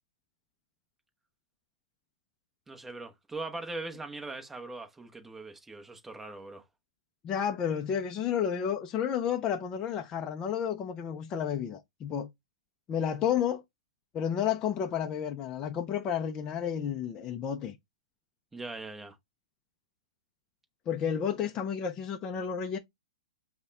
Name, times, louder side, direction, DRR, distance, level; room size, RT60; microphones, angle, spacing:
voice 1, 2.7-6.6 18.5-19.2, right 2 dB, 5° right, 0.8 m, -41 dB
voice 2, 7.2-12.3 12.9-13.6 14.1-17.8 20.9-22.8, left 8 dB, 20° left, 0.4 m, -31 dB
5.4 x 2.2 x 3.3 m
hypercardioid pair, 145°, 4 cm